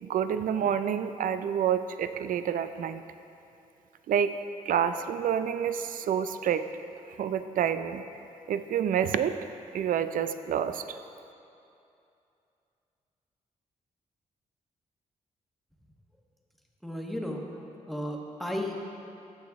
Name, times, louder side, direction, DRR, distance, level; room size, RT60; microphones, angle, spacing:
voice 1, 0.0-3.0 4.1-4.4 4.6-6.7 7.2-8.0 8.5-9.4 9.7-11.0, right 8 dB, 70° right, 11 dB, 0.4 m, -28 dB
voice 2, 16.8-17.4 17.9-18.9, left 1 dB, ahead, -1 dB, 1.3 m, -34 dB
16.0 x 6.4 x 3.6 m, 2.7 s
cardioid pair, 75°, 14 cm